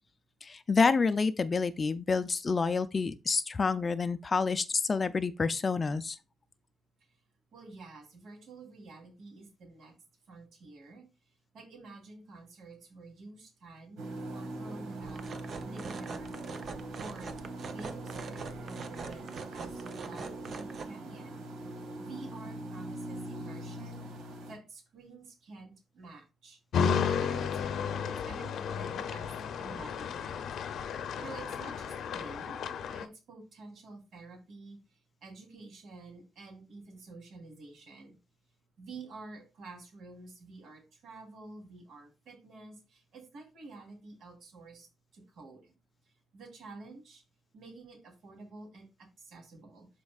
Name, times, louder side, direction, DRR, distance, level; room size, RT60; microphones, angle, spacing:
voice 1, 0.4-6.2, left 4 dB, 25° left, 0.4 m, -28 dB
voice 2, 7.5-9.9 10.3-15.2 15.6-16.6 16.9-17.3 17.6-24.0 24.5-26.6 27.0-27.8 28.0-29.3 29.6-30.4 31.2-32.6 32.9-38.2 38.8-45.7 46.0-47.2 47.5-49.9, right 3 dB, 65° right, 3.3 m, -49 dB
sound 1, 14.0-24.6, right 2 dB, 90° right, 1.9 m, -42 dB
sound 2, 15.0-20.9, right 5 dB, 45° right, 0.8 m, -43 dB
sound 3, 26.7-33.1, left 7 dB, 60° left, 0.7 m, -33 dB
12.5 x 4.3 x 2.4 m
cardioid pair, 150°, 0 cm